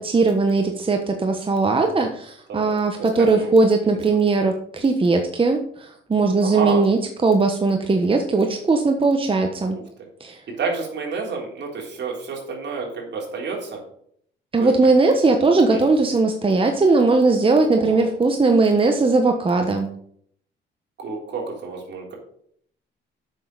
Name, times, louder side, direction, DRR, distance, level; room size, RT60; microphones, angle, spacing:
voice 1, 0.0-9.8 10.2-10.4 14.5-19.9, right 3 dB, 25° right, 4 dB, 1.2 m, -19 dB
voice 2, 2.5-3.5 6.4-6.8 10.6-13.8 14.6-14.7 15.7-15.8 17.7-18.1 21.0-22.1, right 4 dB, 65° right, 0 dB, 3.5 m, -30 dB
7.6 x 6.4 x 6.5 m, 0.65 s
cardioid pair, 90°, 20 cm